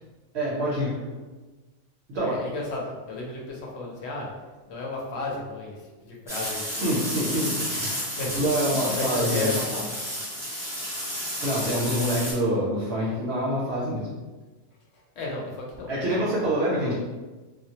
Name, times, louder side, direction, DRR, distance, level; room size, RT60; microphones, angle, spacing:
voice 1, 0.3-0.9 2.1-2.4 6.8-8.0 8.3-9.5 11.4-14.1 15.9-16.9, equal, 65° right, -6 dB, 0.8 m, -26 dB
voice 2, 2.2-4.3 4.7-7.6 8.2-10.0 15.2-16.5, left 3 dB, 65° left, -2 dB, 0.8 m, -34 dB
sound 1, 6.3-12.3, equal, 5° right, 0.5 m, -31 dB
2.2 x 2.0 x 2.7 m, 1.2 s
omnidirectional pair, 1.3 m